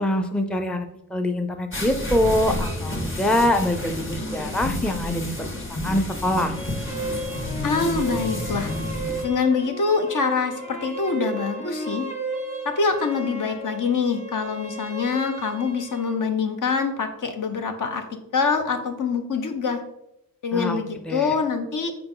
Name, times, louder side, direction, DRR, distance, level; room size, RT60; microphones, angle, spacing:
voice 1, 0.0-6.6 20.5-21.3, left 1 dB, 5° left, 5 dB, 0.5 m, -24 dB
sound 1, 1.7-9.2, left 1 dB, 35° left, 1.7 m, -30 dB
sound 2, 6.2-16.2, right 2 dB, 20° left, 1.3 m, -34 dB
voice 2, 7.6-8.7 9.2-12.1 12.6-18.0 18.3-19.8 20.4-21.9, left 5 dB, 65° left, 6 dB, 1.0 m, -25 dB
7.7 x 4.9 x 3.9 m, 0.84 s
wide cardioid pair, 125°, 33 cm